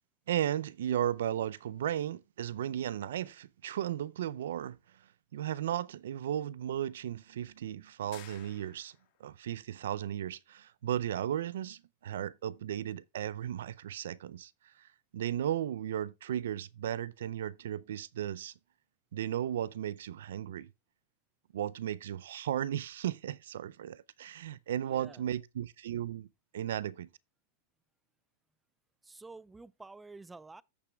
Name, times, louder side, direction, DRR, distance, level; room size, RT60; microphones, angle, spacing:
voice 1, 0.3-4.8 5.3-9.0 9.2-14.5 14.8-18.5 19.1-20.7 21.5-26.3 26.5-27.1, right 11 dB, 80° right, 0.4 m, -35 dB
sound 1, 8.1-9.2, left 13 dB, 55° left, 1.7 m, -54 dB
voice 2, 24.8-25.2 29.0-30.6, right 3 dB, 10° right, 0.4 m, -50 dB
14.5 x 5.9 x 2.3 m
hypercardioid pair, 120°, 0 cm